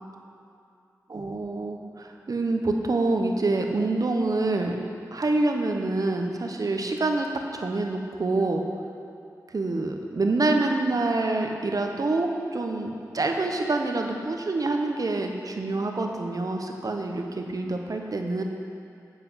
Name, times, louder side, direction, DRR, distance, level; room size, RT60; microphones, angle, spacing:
voice 1, 1.1-7.3 7.5-8.6 9.5-18.4, right 2 dB, 60° right, 3 dB, 1.0 m, -26 dB
8.5 x 7.7 x 5.7 m, 2.5 s
cardioid pair, 40°, 7 cm